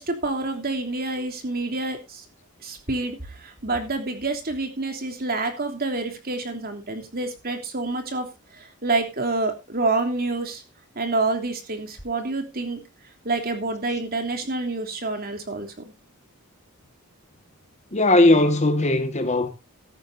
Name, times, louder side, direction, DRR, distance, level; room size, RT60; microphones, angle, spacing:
voice 1, 0.0-2.2 2.6-8.3 8.5-10.6 10.9-12.8 13.2-15.7, right 3 dB, 40° right, 3.3 m, -27 dB
voice 2, 17.9-19.5, left 2 dB, 30° left, 1.6 m, -18 dB
15.5 x 12.5 x 2.7 m
head